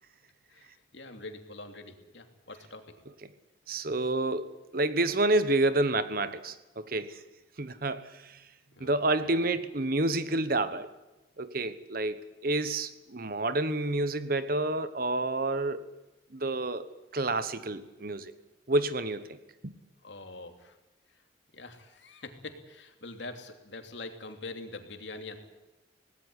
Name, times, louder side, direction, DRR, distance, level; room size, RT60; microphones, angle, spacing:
voice 1, 0.5-3.0 8.7-8.9 9.2-9.5 20.0-20.8 21.5-25.4, left 2 dB, 65° left, 6 dB, 2.9 m, -44 dB
voice 2, 3.7-7.2 7.6-8.4 8.8-10.9 11.4-12.2 12.4-15.8 16.3-16.9 17.1-18.3 18.7-19.3 19.6-19.7, right 2 dB, 50° right, 12 dB, 1.2 m, -29 dB
18.5 x 17.5 x 9.9 m, 1.0 s
head